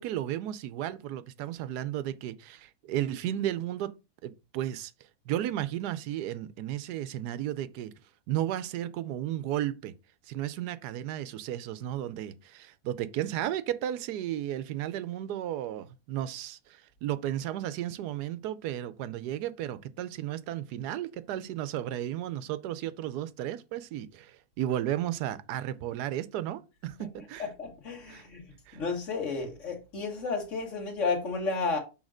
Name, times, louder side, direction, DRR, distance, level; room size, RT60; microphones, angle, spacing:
voice 1, 0.0-3.9 4.2-4.9 5.3-8.0 8.3-9.9 10.3-27.5 28.1-28.2 28.7-28.8, right 12 dB, 85° right, 1.2 m, -34 dB
voice 2, 27.4-28.4 28.7-31.8, left 4 dB, 50° left, 2.0 m, -32 dB
6.3 x 3.7 x 4.9 m
omnidirectional pair, 1.7 m